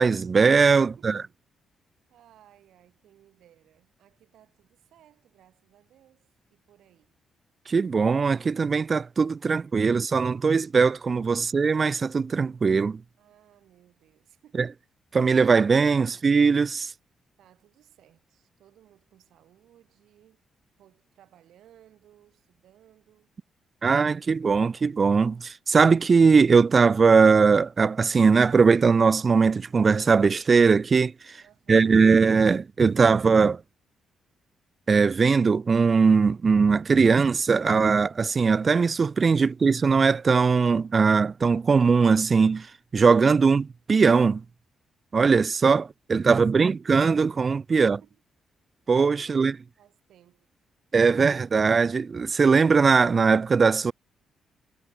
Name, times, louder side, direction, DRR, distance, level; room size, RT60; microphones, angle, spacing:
voice 1, 0.0-1.2 7.7-13.0 14.6-14.7 15.1-16.9 23.8-31.4 31.7-33.6 34.9-42.7 42.9-44.4 45.1-48.0 48.9-49.5 50.9-53.9, right 5 dB, 30° right, 0.4 m, -20 dB
voice 2, 0.8-1.3 2.1-7.2 11.4-11.5 13.2-14.7 16.0-16.2 17.4-20.4 20.8-23.3 31.4-32.2 39.4-39.5 46.5-46.8 47.8-48.2 49.2-49.4 49.8-50.5, right 12 dB, 80° right, 6.3 m, -59 dB
cardioid pair, 160°, 0 cm